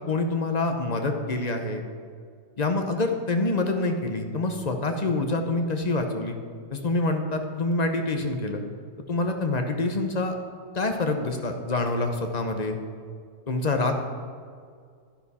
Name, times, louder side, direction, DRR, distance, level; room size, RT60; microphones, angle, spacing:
voice 1, 0.1-1.8 2.6-6.4 6.7-8.6 9.1-10.3 10.7-12.8 13.5-14.0, left 2 dB, 40° left, 4 dB, 0.6 m, -26 dB
11.5 x 10.0 x 4.2 m, 2.1 s
omnidirectional pair, 1.8 m